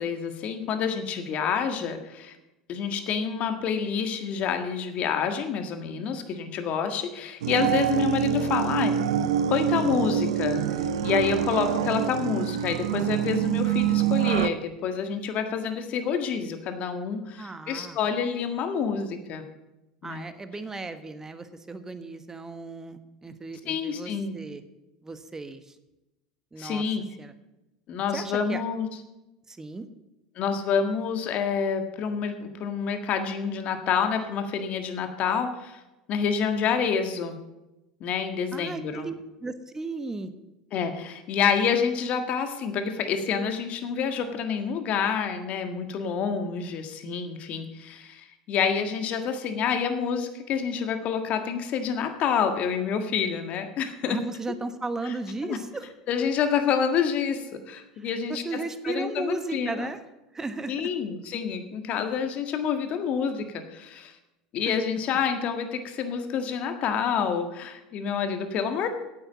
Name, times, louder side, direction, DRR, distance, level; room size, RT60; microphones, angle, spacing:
voice 1, 0.0-2.3 2.7-8.9 9.5-10.6 11.0-19.4 20.0-20.2 23.7-24.4 26.6-27.0 27.9-28.9 30.4-35.8 36.1-37.4 38.0-39.1 40.7-54.2 55.5-55.6 56.1-58.4 58.8-59.9 60.7-64.1 64.5-68.9, left 6 dB, 50° left, 7 dB, 1.7 m, -28 dB
sound 1, 7.4-14.5, right 10 dB, 80° right, 0.6 m, -26 dB
voice 2, 17.4-18.0 20.0-24.6 25.0-25.8 26.5-26.8 27.2-27.3 28.1-28.6 29.5-29.9 38.5-39.1 39.4-40.3 54.1-55.9 57.9-60.0 60.3-60.8 64.7-64.8, right 3 dB, 15° right, 10 dB, 1.2 m, -35 dB
8.9 x 8.4 x 7.3 m, 0.97 s
hypercardioid pair, 80°, 3 cm